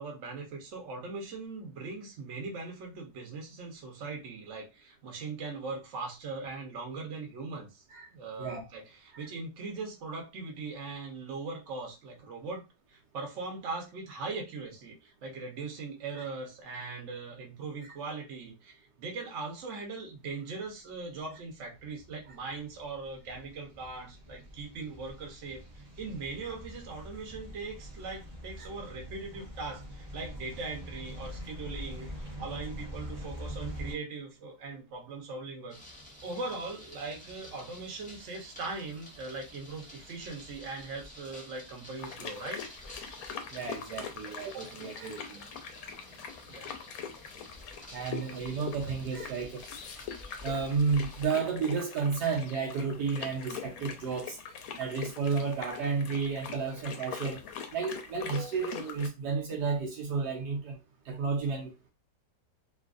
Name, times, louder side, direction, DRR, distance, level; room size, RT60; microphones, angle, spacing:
voice 1, 0.0-7.8 8.1-35.8 36.2-42.6 46.5-46.7, right 3 dB, 50° right, 1.1 m, -40 dB
sound 1, 21.1-33.9, equal, 35° right, 0.7 m, -44 dB
sound 2, 35.7-51.2, left 1 dB, 5° left, 0.6 m, -51 dB
sound 3, 42.0-59.1, left 7 dB, 70° left, 0.9 m, -43 dB
voice 2, 43.5-45.5 47.9-49.7 50.4-54.4 54.8-57.4 57.7-60.8 61.1-61.9, right 5 dB, 75° right, 1.2 m, -32 dB
3.0 x 2.5 x 2.4 m
omnidirectional pair, 1.8 m